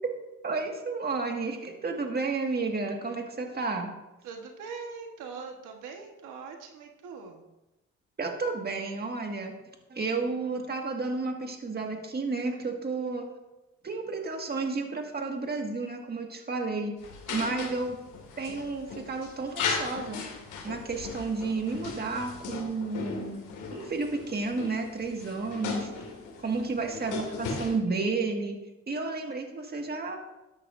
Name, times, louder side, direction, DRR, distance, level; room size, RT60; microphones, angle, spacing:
voice 1, 0.4-3.9 8.2-9.6 9.9-13.3 13.8-16.9 17.3-18.0 18.4-20.2 20.6-23.4 23.7-25.9 26.4-28.6 28.9-30.2, right 3 dB, 35° right, 2 dB, 1.8 m, -31 dB
voice 2, 4.2-7.4 17.3-17.7 26.5-26.7, right 5 dB, 90° right, 3 dB, 1.3 m, -42 dB
sound 1, 17.0-27.8, left 4 dB, 90° left, 2.2 m, -37 dB
13.5 x 9.8 x 2.6 m, 1.0 s
cardioid pair, 90°, 30 cm